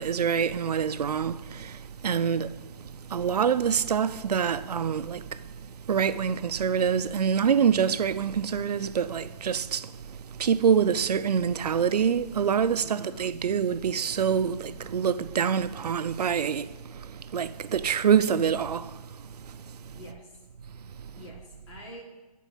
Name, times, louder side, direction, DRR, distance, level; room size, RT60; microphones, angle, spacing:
voice 1, 0.0-19.9 21.0-21.1, right 7 dB, 85° right, 0.6 m, -26 dB
voice 2, 12.8-13.2 19.9-20.4 21.1-22.0, equal, 45° left, 3.5 m, -45 dB
13.5 x 4.6 x 7.2 m
hypercardioid pair, 155°, 20 cm